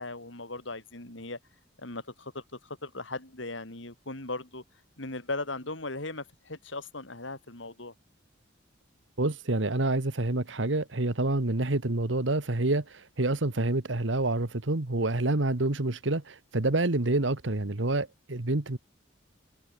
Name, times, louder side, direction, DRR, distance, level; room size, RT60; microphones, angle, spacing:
voice 1, 0.0-1.4 1.8-4.6 5.0-7.9, left 2 dB, 75° left, 4.7 m, -38 dB
voice 2, 9.2-18.8, right 2 dB, 70° right, 1.5 m, -27 dB
head